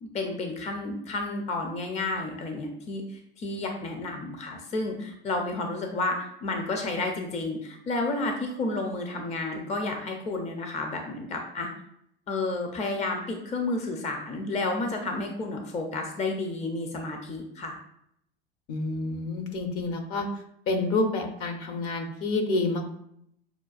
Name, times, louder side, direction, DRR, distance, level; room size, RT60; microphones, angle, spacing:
voice 1, 0.0-11.7 12.3-17.8, left 2 dB, 25° left, 3 dB, 0.5 m, -31 dB
voice 2, 18.7-20.3 20.7-22.8, left 2 dB, 50° left, 5 dB, 0.8 m, -28 dB
5.6 x 2.2 x 2.4 m, 0.73 s
hypercardioid pair, 85°, 30 cm